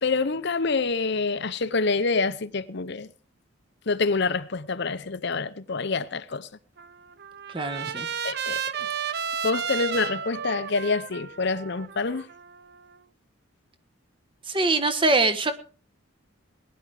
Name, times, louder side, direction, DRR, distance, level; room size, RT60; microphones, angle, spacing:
voice 1, 0.0-3.1 3.9-6.5 8.2-9.2 9.4-12.3, left 4 dB, 55° left, 0.7 m, -27 dB
Trumpet, 6.8-12.9, right 7 dB, 50° right, 0.7 m, -33 dB
voice 2, 7.5-8.1 14.5-15.5, right 3 dB, 25° right, 1.3 m, -23 dB
19.5 x 10.5 x 4.9 m
head